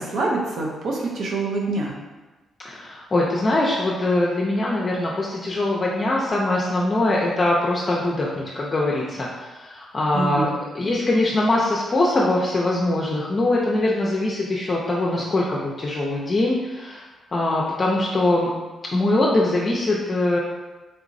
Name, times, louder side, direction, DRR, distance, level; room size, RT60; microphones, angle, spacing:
voice 1, 0.0-2.0 10.1-10.5, right 2 dB, 70° right, -3 dB, 0.6 m, -25 dB
voice 2, 2.6-10.5 10.7-17.0 17.3-18.5 18.9-20.4, left 2 dB, 35° left, -4 dB, 0.5 m, -22 dB
3.3 x 2.9 x 2.6 m, 1.2 s
cardioid pair, 100°, 0 cm